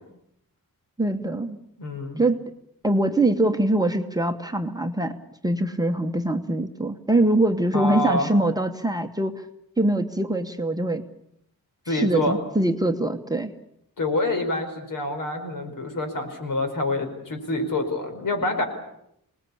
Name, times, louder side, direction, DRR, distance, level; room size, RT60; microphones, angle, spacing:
voice 1, 1.0-1.6 2.2-2.4 2.8-5.1 5.4-9.3 9.8-11.0 11.9-13.5, right 1 dB, 10° right, 4 dB, 1.0 m, -23 dB
voice 2, 1.8-2.2 7.7-8.3 11.9-12.4 14.0-18.6, left 2 dB, 60° left, 6 dB, 4.8 m, -26 dB
27.0 x 20.0 x 8.6 m, 0.77 s
wide cardioid pair, 175°, 36 cm